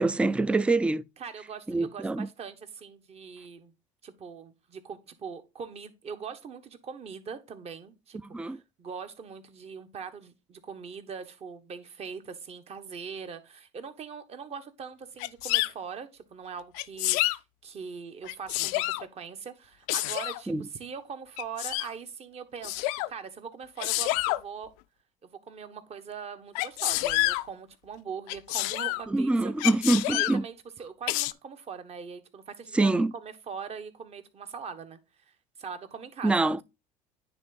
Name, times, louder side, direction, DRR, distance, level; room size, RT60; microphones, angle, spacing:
voice 1, 0.0-1.0 1.7-2.3 8.3-8.6 20.5-20.7 29.1-30.4 32.7-33.1 36.2-36.6, right 2 dB, 5° right, 0.4 m, -25 dB
voice 2, 1.2-3.7 4.0-24.7 25.2-29.5 30.1-35.3 35.6-36.6, right 6 dB, 40° right, 1.3 m, -41 dB
Sneeze, 15.2-15.7 16.7-17.4 18.2-19.0 19.9-20.4 21.4-21.9 22.6-23.1 23.8-24.4 26.6-27.4 28.3-29.0 29.6-30.4 31.1-31.3, left 19 dB, 75° left, 0.4 m, -28 dB
9.8 x 3.5 x 4.0 m
supercardioid pair, 90°, 16 cm